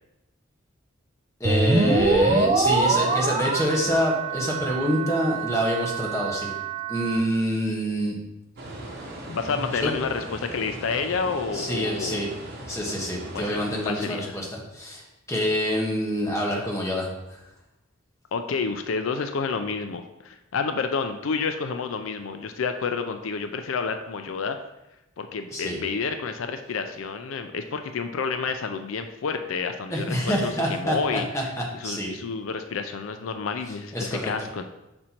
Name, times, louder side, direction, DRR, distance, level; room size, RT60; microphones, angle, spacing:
voice 1, 1.4-6.5 6.9-8.2 9.6-9.9 11.5-12.3 12.7-15.0 15.3-17.4 25.5-25.8 29.9-32.1 33.9-34.3, equal, 15° left, -2 dB, 1.3 m, -26 dB
sound 1, 1.5-7.2, right 3 dB, 30° right, 0.5 m, -25 dB
sound 2, 8.6-13.9, right 1 dB, 55° right, 1.1 m, -39 dB
voice 2, 9.3-12.2 13.3-13.6 13.9-14.3 18.3-24.6 25.2-31.3 31.7-34.6, left 5 dB, 80° left, 7 dB, 0.4 m, -29 dB
6.3 x 4.3 x 4.3 m, 0.94 s
head